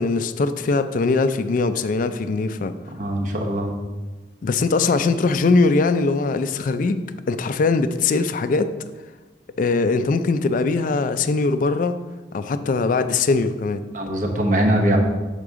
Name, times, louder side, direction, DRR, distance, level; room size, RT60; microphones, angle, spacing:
voice 1, 0.0-2.7 4.4-8.7 9.6-12.0 12.3-13.8, left 3 dB, 45° left, 11 dB, 0.3 m, -21 dB
voice 2, 2.9-3.7 13.9-15.0, right 1 dB, 45° right, 1 dB, 0.9 m, -21 dB
6.4 x 5.8 x 3.6 m, 1.2 s
head